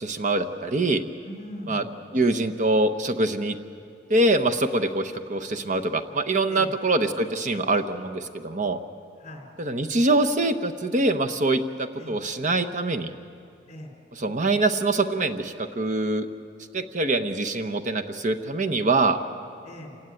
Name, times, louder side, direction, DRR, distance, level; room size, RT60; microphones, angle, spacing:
voice 1, 0.0-1.0 1.7-1.8 2.1-3.6 4.1-8.8 9.6-13.1 14.1-16.3 16.7-19.2, right 2 dB, 45° right, 7 dB, 0.9 m, -24 dB
voice 2, 1.2-1.9 6.5-6.7 9.2-9.5 12.0-12.2 13.7-13.9 19.6-20.0, left 1 dB, 40° left, 1 dB, 4.3 m, -40 dB
27.0 x 17.0 x 9.7 m, 2.3 s
head